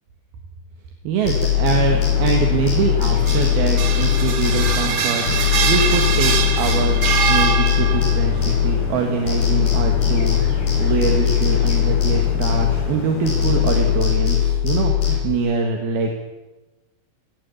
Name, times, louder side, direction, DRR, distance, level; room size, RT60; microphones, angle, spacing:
voice 1, 1.0-16.2, right 5 dB, 70° right, 3 dB, 3.6 m, -24 dB
sound 1, 1.2-5.0 5.3-9.0 9.3-13.0 13.3-15.2, left 10 dB, 50° left, 6.2 m, -20 dB
sound 2, 1.6-14.0, left 1 dB, 80° left, 6.2 m, -31 dB
sound 3, 3.0-8.2, right 7 dB, 50° right, 2.3 m, -23 dB
18.5 x 17.0 x 9.8 m, 1.1 s
omnidirectional pair, 4.7 m